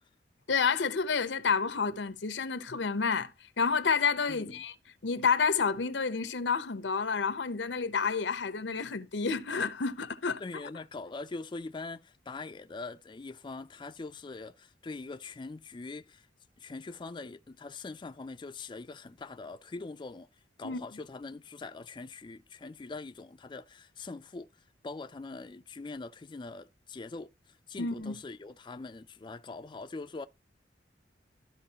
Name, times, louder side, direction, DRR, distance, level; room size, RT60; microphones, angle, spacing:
voice 1, 0.5-3.3 3.6-4.7 5.0-10.4 20.6-20.8 27.8-28.1, left 5 dB, 90° left, 0.8 m, -29 dB
voice 2, 4.3-4.6 10.4-16.3 16.6-20.3 20.6-30.3, left 3 dB, 25° left, 0.4 m, -43 dB
13.0 x 5.1 x 2.8 m
head